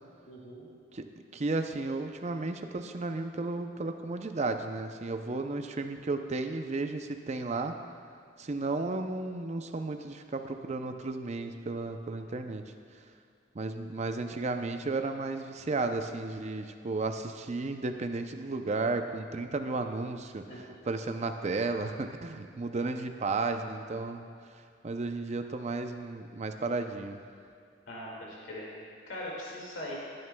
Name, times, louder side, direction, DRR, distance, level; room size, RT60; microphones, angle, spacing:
voice 1, 0.3-0.7 20.5-20.6 27.9-29.9, left 1 dB, 90° left, -4 dB, 2.1 m, -41 dB
voice 2, 1.3-7.8 8.4-12.6 13.5-20.4 20.9-24.3 24.8-27.2, right 3 dB, 35° right, 6 dB, 0.5 m, -33 dB
16.5 x 9.5 x 2.3 m, 2.3 s
head